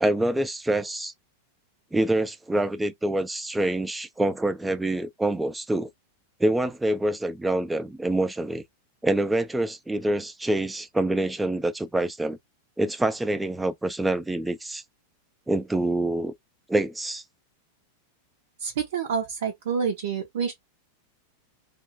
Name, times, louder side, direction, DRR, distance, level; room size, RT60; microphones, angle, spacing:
voice 1, 0.0-1.1 1.9-5.9 6.4-8.6 9.0-12.4 12.8-14.8 15.5-16.3 16.7-17.2, right 1 dB, 5° right, 0.3 m, -26 dB
voice 2, 18.6-20.5, right 6 dB, 60° right, 0.5 m, -28 dB
2.4 x 2.1 x 2.6 m
figure-of-eight pair, 90°, 0 cm